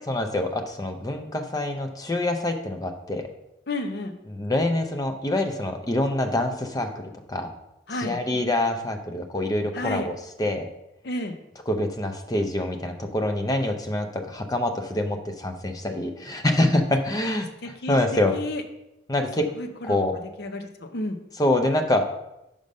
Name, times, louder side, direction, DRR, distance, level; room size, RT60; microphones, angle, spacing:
voice 1, 0.1-3.3 4.3-6.9 7.3-7.5 7.9-10.7 11.7-18.3 19.1-19.5 19.8-20.2 21.4-22.1, left 1 dB, 20° left, 6 dB, 0.5 m, -25 dB
voice 2, 3.7-4.2 7.9-8.2 9.7-10.1 11.0-11.4 17.6-18.6 19.6-21.2, left 2 dB, 55° left, 6 dB, 0.7 m, -32 dB
5.2 x 5.1 x 5.3 m, 0.89 s
head